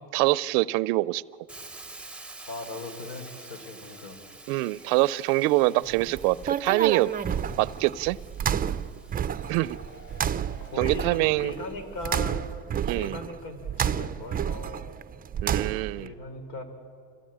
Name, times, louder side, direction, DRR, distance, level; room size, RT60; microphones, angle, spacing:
voice 1, 0.1-1.2 4.5-7.1 7.6-8.2 9.5-9.8 10.8-11.5 12.8-13.2 15.4-16.1, right 19 dB, 90° right, 20 dB, 0.6 m, -24 dB
Hiss, 1.5-11.4, right 2 dB, 5° right, 0.9 m, -49 dB
voice 2, 2.5-4.2 5.7-5.9 7.4-7.7 10.6-15.0 15.9-16.6, left 2 dB, 70° left, 8 dB, 3.8 m, -39 dB
sound 1, 5.9-16.1, right 8 dB, 20° right, 0.5 m, -31 dB
sound 2, 9.0-12.4 12.7-12.8 13.1-13.2, left 2 dB, 30° left, 2.3 m, -53 dB
27.0 x 16.5 x 8.7 m, 2.4 s
supercardioid pair, 105°, 43 cm